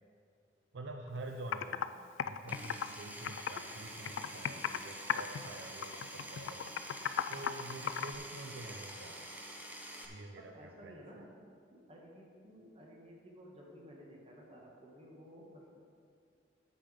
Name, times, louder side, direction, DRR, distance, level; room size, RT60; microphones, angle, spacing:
voice 1, 0.7-1.9 2.2-6.7 7.3-9.3 10.1-11.0, right 2 dB, 70° right, 4 dB, 0.6 m, -47 dB
Computer keyboard, 1.1-1.2 1.5-1.9 2.2-3.7 4.1-4.8 5.1-5.5 5.8-8.2, left 8 dB, 85° left, 0.3 m, -36 dB
Power tool, 2.5-10.1, right 1 dB, 10° right, 0.8 m, -47 dB
voice 2, 8.5-8.8 10.3-11.3 11.7-15.8, equal, 30° right, -2 dB, 1.5 m, -55 dB
8.8 x 7.5 x 5.1 m, 2.3 s
head